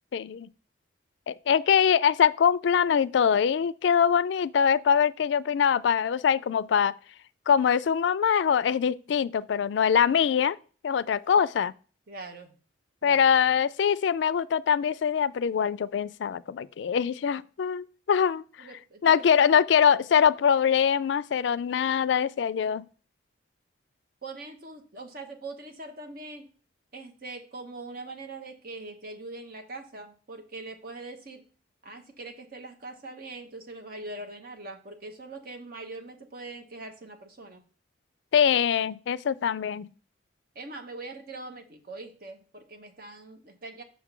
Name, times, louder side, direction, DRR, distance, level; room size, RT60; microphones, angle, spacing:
voice 1, 0.1-0.5 1.3-6.9 7.5-10.6 10.8-11.7 13.0-18.4 19.0-22.9 38.3-39.9, left 7 dB, 70° left, 0.3 m, -23 dB
voice 2, 12.1-12.5 13.0-13.3 18.6-19.3 24.2-26.5 26.9-31.5 31.8-37.6 40.5-43.8, right 2 dB, 50° right, 1.1 m, -42 dB
6.2 x 3.7 x 5.9 m
head